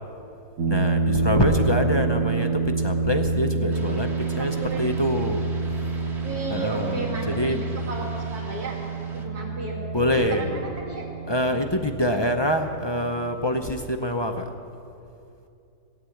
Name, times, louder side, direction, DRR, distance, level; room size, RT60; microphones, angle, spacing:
sound 1, 0.6-13.7, right 4 dB, 65° right, 1.5 m, -28 dB
voice 1, 0.7-5.5 6.5-7.6 9.9-10.6 11.3-14.5, left 1 dB, 40° left, 5 dB, 0.4 m, -25 dB
voice 2, 1.4-2.5 4.4-4.9 6.2-8.7 9.1-11.0, right 2 dB, 90° right, -2 dB, 3.1 m, -34 dB
sound 2, 3.7-9.3, right 1 dB, 45° right, 1.8 m, -43 dB
16.5 x 9.1 x 8.5 m, 2.7 s
omnidirectional pair, 1.6 m